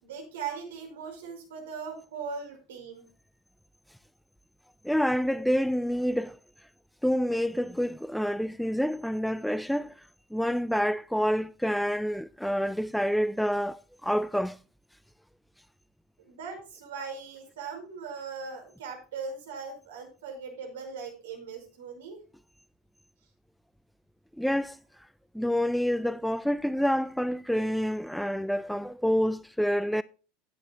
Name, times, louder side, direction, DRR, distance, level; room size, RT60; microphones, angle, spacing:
voice 1, 0.0-3.1 16.2-22.2, right 5 dB, 70° right, 5.3 m, -39 dB
voice 2, 4.8-6.4 7.0-14.6 24.4-24.8 25.3-30.0, equal, ahead, 0.4 m, -28 dB
16.5 x 9.0 x 2.3 m
figure-of-eight pair, 80°, 0 cm